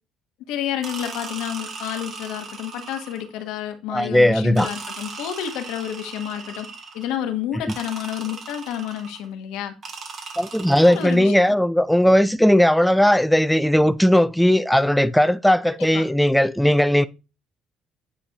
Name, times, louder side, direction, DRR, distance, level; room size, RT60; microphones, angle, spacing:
voice 1, 0.5-6.7 6.9-9.7 10.7-11.6 15.7-16.0, left 10 dB, 85° left, 1.0 m, -30 dB
sound 1, 0.8-3.4 4.5-7.2 7.7-9.3 9.8-11.5, right 4 dB, 45° right, 1.6 m, -38 dB
voice 2, 3.9-4.7 10.4-17.1, equal, 5° left, 0.3 m, -17 dB
9.0 x 4.2 x 2.8 m
cardioid pair, 100°, 0 cm